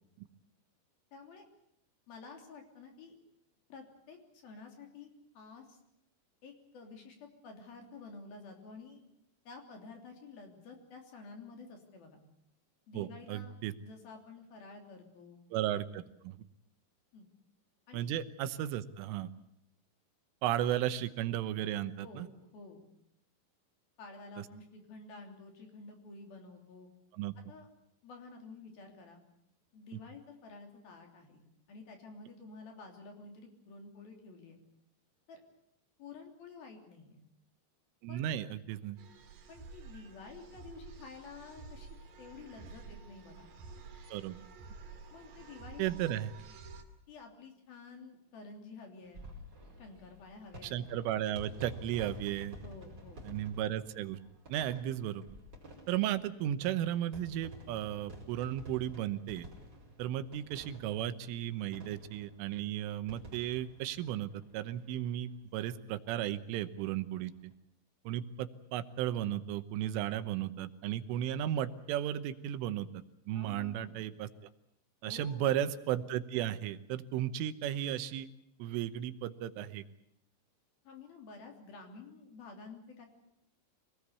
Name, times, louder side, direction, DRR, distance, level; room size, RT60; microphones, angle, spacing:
voice 1, 1.1-1.5 2.1-3.2 3.7-4.2 4.4-5.1 5.3-5.8 6.4-9.0 9.4-12.2 12.9-13.5 13.8-15.4 17.1-17.3 17.9-18.1 22.0-22.8 24.0-26.9 27.5-27.7 28.0-29.2 29.7-34.6 35.3-35.4 36.0-37.2 38.1-38.3 39.5-41.9 42.2-43.5 45.1-45.9 47.1-49.2 49.8-50.8 52.6-53.2 73.3-74.0 75.0-75.6 80.8-83.1, left 4 dB, 50° left, 3 dB, 4.8 m, -51 dB
voice 2, 13.0-13.7 15.5-16.4 17.9-19.3 20.4-22.3 27.1-27.3 29.9-30.0 38.0-39.0 44.1-44.4 45.8-46.3 50.6-52.6 53.2-54.2 54.5-55.3 55.9-59.5 60.0-67.5 68.1-72.9 73.3-74.3 75.0-78.3 78.6-79.8, right 11 dB, 85° right, 12 dB, 3.6 m, -35 dB
sound 1, 39.0-46.8, right 4 dB, 55° right, 3.4 m, -51 dB
sound 2, 49.0-65.0 65.4-65.5 65.6-65.7 67.0-67.3, right 1 dB, 20° right, 5.2 m, -51 dB
25.5 x 19.5 x 8.3 m, 0.77 s
omnidirectional pair, 5.6 m